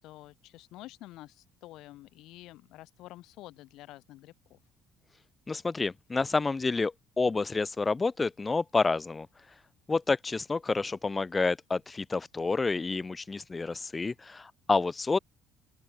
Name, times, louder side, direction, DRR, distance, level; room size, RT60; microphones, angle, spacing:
voice 1, 0.0-4.6, left 17 dB, 70° left, 5.4 m, -49 dB
voice 2, 5.5-9.3 9.9-15.2, left 3 dB, 15° left, 0.9 m, -29 dB
open air
cardioid pair, 165°, 0 cm